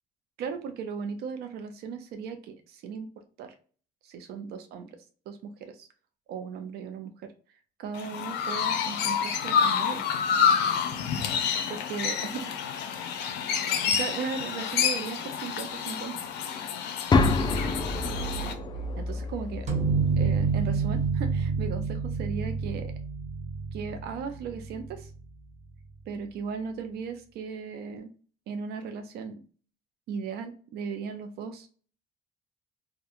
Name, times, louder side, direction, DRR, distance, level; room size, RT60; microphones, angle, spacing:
voice 1, 0.4-3.5 4.0-4.9 5.3-5.9 6.3-7.3 7.8-10.0 11.7-12.8 13.9-16.2 19.0-19.7 20.2-22.9 23.7-25.1 26.1-28.1 28.5-29.4 30.1-31.7, right 6 dB, 75° right, 7 dB, 0.5 m, -37 dB
Chirp tweet, 7.9-18.5, left 7 dB, 80° left, 0.5 m, -28 dB
sound 1, 17.1-21.1, left 3 dB, 25° left, 0.3 m, -28 dB
sound 2, 19.7-25.2, right 5 dB, 40° right, 0.8 m, -28 dB
2.7 x 2.2 x 2.4 m, 0.40 s
cardioid pair, 110°, 17 cm